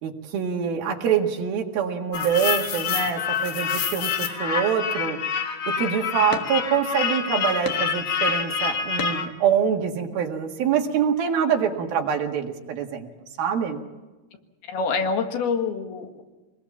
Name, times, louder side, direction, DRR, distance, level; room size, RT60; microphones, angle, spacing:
voice 1, 0.0-5.2 5.7-13.1 13.4-13.8, right 7 dB, 75° right, 2 dB, 3.7 m, -25 dB
sound 1, 2.1-9.3, left 6 dB, 55° left, 2.4 m, -27 dB
voice 2, 14.7-16.2, left 5 dB, 80° left, 4 dB, 3.9 m, -26 dB
25.0 x 20.5 x 7.3 m, 1.2 s
omnidirectional pair, 4.4 m